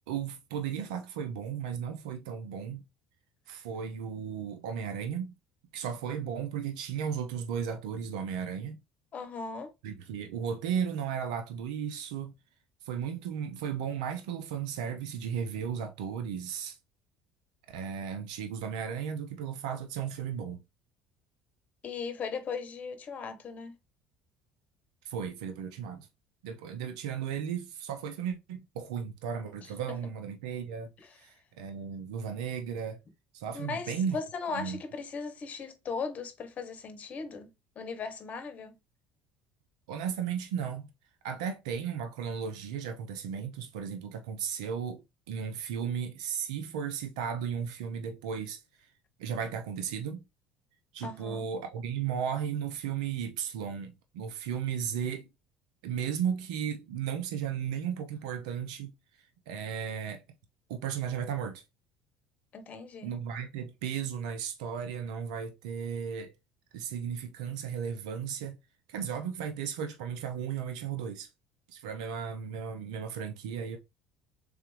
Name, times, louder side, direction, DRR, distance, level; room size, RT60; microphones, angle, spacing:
voice 1, 0.0-2.8 3.5-5.3 5.7-8.8 9.8-12.3 12.8-16.8 17.7-20.6 25.0-26.1 26.4-33.0 33.3-34.2 34.5-34.8 39.9-40.9 41.2-48.6 49.2-50.2 50.9-55.3 55.8-58.9 59.5-60.2 60.7-61.6 63.0-66.3 66.7-68.6 68.9-71.3 71.7-73.8, right 7 dB, 80° right, 0.6 m, -35 dB
voice 2, 9.1-9.7 21.8-23.7 31.0-31.1 33.5-38.8 51.0-51.5 62.5-63.1, left 5 dB, 40° left, 1.0 m, -38 dB
3.5 x 3.4 x 3.2 m
hypercardioid pair, 80°, 4 cm